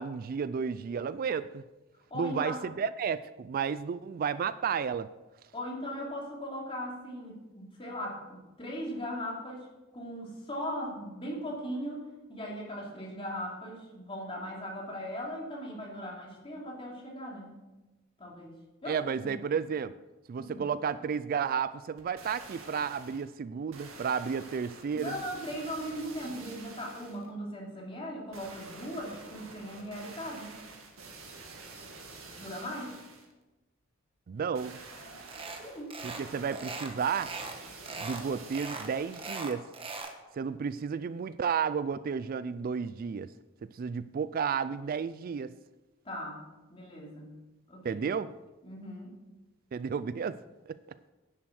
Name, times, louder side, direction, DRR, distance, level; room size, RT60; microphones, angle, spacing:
voice 1, 0.0-1.6 2.1-5.1 18.9-19.9 20.3-25.1 34.3-34.8 36.0-37.3 38.0-39.7 40.3-43.3 43.7-45.5 47.8-48.3 49.7-50.4 50.7-50.8, right 6 dB, 45° right, 15 dB, 0.3 m, -32 dB
voice 2, 2.1-2.6 5.5-9.7 9.9-17.6 18.2-18.5 18.8-19.4 20.4-20.7 24.9-30.6 32.4-33.0 35.6-36.0 46.0-46.4 46.7-47.3 47.7-48.0 48.6-49.2 50.1-50.2, equal, 25° left, -2 dB, 2.9 m, -39 dB
sound 1, 22.0-23.3 23.7-27.3 28.3-33.3 34.5-39.5 40.0-40.1, right 3 dB, 85° right, 2.1 m, -48 dB
sound 2, 35.3-35.6 35.9-36.2 36.5-37.6 37.9-38.2 38.5-40.2, right 3 dB, 25° right, 1.2 m, -40 dB
10.5 x 7.6 x 6.4 m, 1.1 s
head